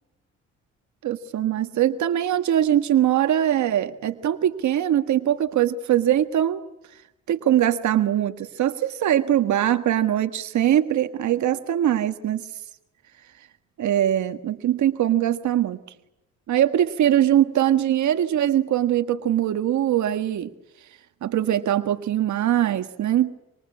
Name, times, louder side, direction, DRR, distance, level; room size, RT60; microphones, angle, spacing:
voice 1, 1.0-6.6 7.3-12.4 13.8-15.8 16.5-20.5 21.2-23.3, right 11 dB, 70° right, 8 dB, 1.6 m, -22 dB
26.5 x 26.0 x 8.6 m, 0.92 s
cardioid pair, 90°, 30 cm